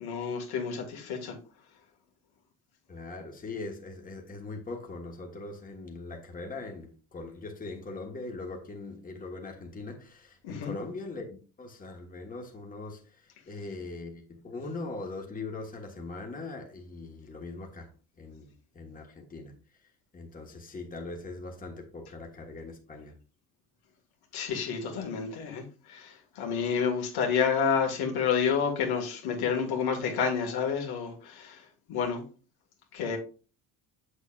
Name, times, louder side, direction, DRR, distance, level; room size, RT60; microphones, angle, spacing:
voice 1, 0.0-1.4 10.4-10.7 24.3-31.6 31.9-32.2 32.9-33.2, left 6 dB, 75° left, 1.9 m, -29 dB
voice 2, 2.9-17.9 18.2-18.5 18.7-19.5 20.1-23.1, left 3 dB, 20° left, 1.5 m, -41 dB
6.9 x 6.6 x 2.4 m
cardioid pair, 105°, 38 cm